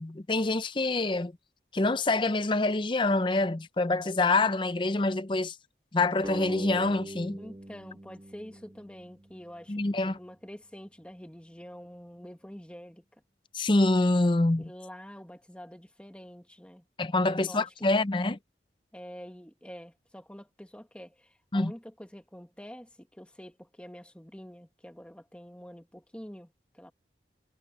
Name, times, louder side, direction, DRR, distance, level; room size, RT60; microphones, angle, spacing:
voice 1, 0.0-1.3 1.7-5.6 5.9-7.4 9.7-10.2 13.5-14.7 17.0-18.4 21.5-21.7, left 2 dB, 25° left, 0.6 m, -26 dB
sound 1, 6.2-9.4, right 1 dB, 20° right, 0.7 m, -42 dB
voice 2, 7.4-13.0 14.6-16.8 17.2-17.9 18.9-26.9, equal, 5° left, 1.4 m, -47 dB
head